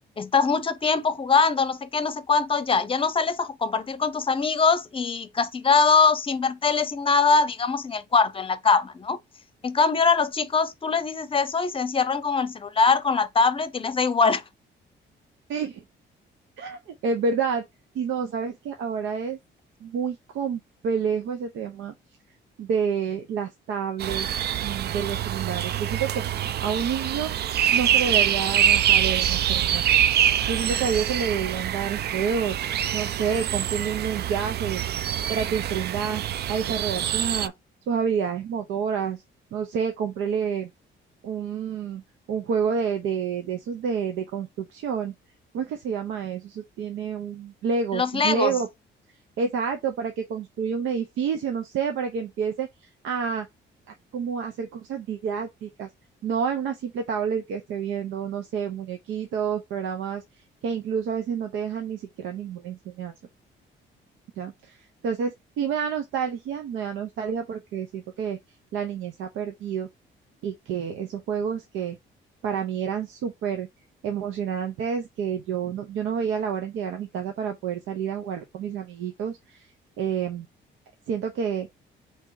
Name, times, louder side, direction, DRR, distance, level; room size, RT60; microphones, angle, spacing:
voice 1, 0.2-9.2 9.6-14.4 47.9-48.6, left 5 dB, 25° left, 0.7 m, -22 dB
voice 2, 15.5-15.8 16.6-17.7 17.9-19.4 19.8-21.9 22.6-24.3 24.6-27.4 27.7-29.8 30.5-32.6 32.9-34.8 35.3-36.2 36.5-37.5 37.9-39.2 39.5-40.7 41.2-42.0 42.3-45.1 45.5-48.7 49.4-53.5 53.9-55.9 56.2-60.2 60.6-63.1 64.4-64.8 65.0-68.4 68.7-69.9 70.4-72.0 72.4-73.7 74.0-79.7 80.0-80.5 81.1-81.7, right 6 dB, 85° right, 0.8 m, -29 dB
sound 1, 24.0-37.5, right 10 dB, 55° right, 0.4 m, -25 dB
3.4 x 2.9 x 4.6 m
cardioid pair, 90°, 20 cm